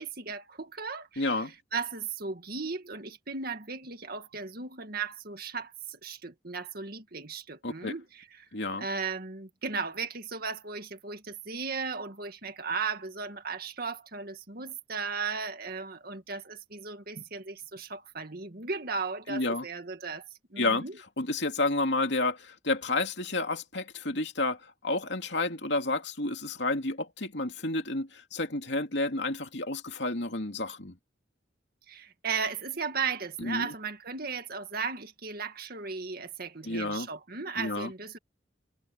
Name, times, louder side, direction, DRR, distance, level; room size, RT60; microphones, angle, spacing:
voice 1, 0.0-8.5 8.8-21.0 31.9-38.2, right 5 dB, 55° right, 2.0 m, -36 dB
voice 2, 1.2-1.5 7.6-7.9 8.5-8.9 19.3-19.7 20.6-20.8 21.2-31.0 33.4-33.7 36.6-37.1 37.6-37.9, left 2 dB, 70° left, 2.8 m, -30 dB
head